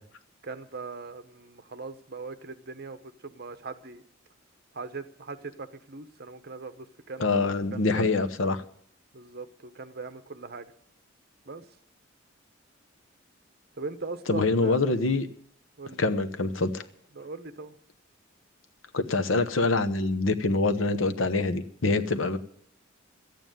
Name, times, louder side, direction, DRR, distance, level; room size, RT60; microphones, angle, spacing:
voice 1, 0.4-4.0 4.7-8.1 9.1-10.7 11.4-11.7 13.8-14.8 15.8-16.0 17.1-17.8, right 3 dB, 50° right, 10 dB, 1.0 m, -40 dB
voice 2, 7.2-8.6 14.3-15.3 16.0-16.8 18.9-22.4, left 3 dB, 70° left, 9 dB, 1.0 m, -25 dB
13.5 x 9.2 x 9.2 m, 0.64 s
head